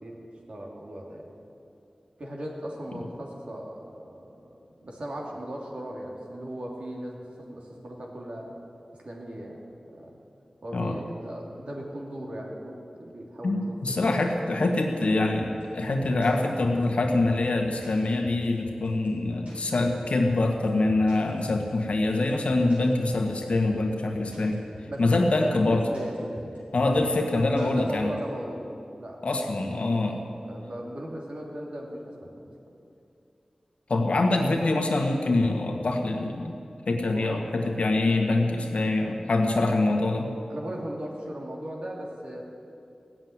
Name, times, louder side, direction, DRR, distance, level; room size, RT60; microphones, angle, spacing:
voice 1, 0.0-1.3 2.2-8.5 9.0-9.6 9.9-10.2 10.6-14.3 24.9-26.6 27.4-28.7 28.9-29.2 29.9-30.2 30.4-32.4 37.1-37.4 37.8-37.9 40.5-42.4, right 1 dB, 70° right, -1 dB, 2.7 m, -38 dB
voice 2, 13.4-24.6 25.0-25.8 26.7-28.1 29.2-30.2 33.9-36.6 36.9-40.3, left 2 dB, 80° left, 3 dB, 1.6 m, -25 dB
sound 1, 15.4-28.2, right 1 dB, 85° right, 4.4 m, -44 dB
16.5 x 7.7 x 9.5 m, 2.6 s
wide cardioid pair, 75°, 2 cm